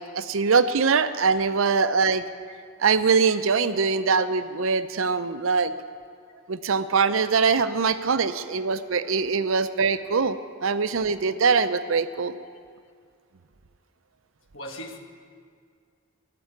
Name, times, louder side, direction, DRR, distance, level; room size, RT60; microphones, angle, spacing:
voice 1, 0.0-2.2 2.8-5.7 6.5-12.3, right 5 dB, 90° right, 12 dB, 0.6 m, -23 dB
voice 2, 14.5-15.0, left 1 dB, 75° left, 4 dB, 1.4 m, -41 dB
13.5 x 6.9 x 9.5 m, 2.2 s
head